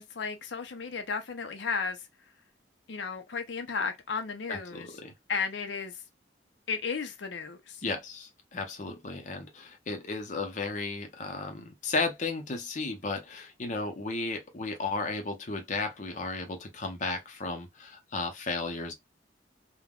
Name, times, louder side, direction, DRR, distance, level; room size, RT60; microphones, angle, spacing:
voice 1, 0.0-2.0 2.9-4.9 5.3-6.0 6.7-7.8, left 5 dB, 80° left, 0.5 m, -34 dB
voice 2, 4.5-5.1 7.8-18.9, left 3 dB, 45° left, 0.6 m, -34 dB
3.5 x 2.1 x 2.2 m
head